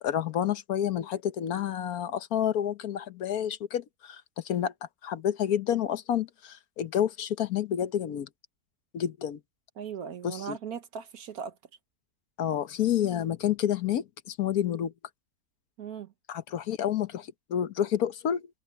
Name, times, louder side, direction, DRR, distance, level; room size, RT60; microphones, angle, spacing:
voice 1, 0.0-4.7 5.0-8.3 8.9-9.4 10.2-10.6 12.4-14.9 16.3-18.5, left 10 dB, 75° left, 1.4 m, -29 dB
voice 2, 9.8-11.6 15.8-16.1, right 7 dB, 75° right, 1.7 m, -38 dB
omnidirectional pair, 1.6 m